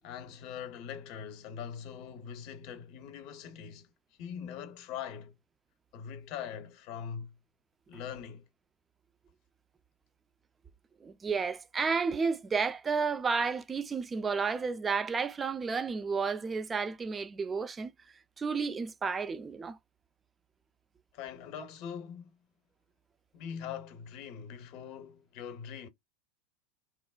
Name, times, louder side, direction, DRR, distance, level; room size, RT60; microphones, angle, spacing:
voice 1, 0.0-3.9 4.2-5.3 5.9-7.3 7.9-8.4 21.1-22.3 23.3-25.9, left 8 dB, 50° left, 0.7 m, -42 dB
voice 2, 11.0-17.9 18.4-19.8, right 5 dB, 20° right, 0.4 m, -31 dB
3.0 x 2.1 x 2.3 m
figure-of-eight pair, 85°, 0 cm